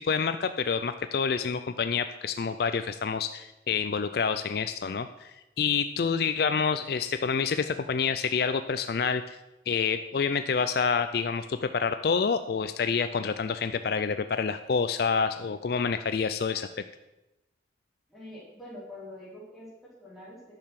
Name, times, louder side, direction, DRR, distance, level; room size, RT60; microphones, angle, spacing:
voice 1, 0.0-5.3 5.6-9.4 9.7-16.7, left 5 dB, 55° left, 10 dB, 0.4 m, -28 dB
voice 2, 18.1-20.6, left 1 dB, ahead, -6 dB, 3.5 m, -45 dB
10.5 x 6.7 x 5.9 m, 0.95 s
head